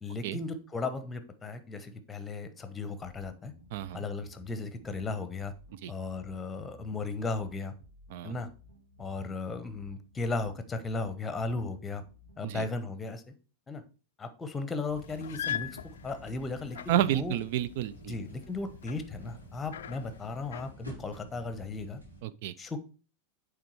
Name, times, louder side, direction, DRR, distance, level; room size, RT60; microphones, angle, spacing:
voice 1, 0.0-3.5 3.9-5.5 5.9-7.7 8.2-8.5 9.0-12.0 12.4-13.3 13.7-13.8 14.2-15.8 16.0-17.4 18.1-22.0 22.6-22.9, left 3 dB, 15° left, 1.0 m, -36 dB
sound 1, 3.0-12.6, equal, 65° right, 1.7 m, -56 dB
voice 2, 3.7-4.0 5.8-5.9 8.1-8.4 12.4-12.6 16.9-18.1 22.2-22.5, right 12 dB, 50° right, 0.4 m, -30 dB
sound 2, 14.9-20.7, left 9 dB, 60° left, 0.4 m, -42 dB
sound 3, 14.9-22.2, right 1 dB, 85° right, 2.3 m, -51 dB
8.6 x 3.5 x 4.7 m
figure-of-eight pair, 90°, 0 cm